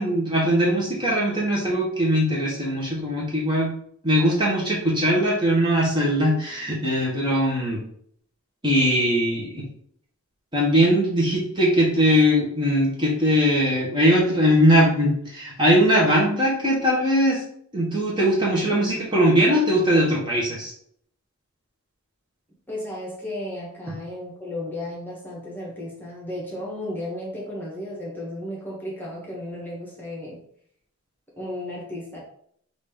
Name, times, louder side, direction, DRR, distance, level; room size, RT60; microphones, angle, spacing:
voice 1, 0.0-3.7 4.0-7.8 8.6-9.6 10.5-17.4 17.7-20.7, equal, 20° right, -4 dB, 1.2 m, -20 dB
voice 2, 22.7-30.4 31.4-32.2, left 1 dB, 10° left, -4 dB, 1.2 m, -34 dB
5.1 x 2.6 x 3.6 m, 0.65 s
head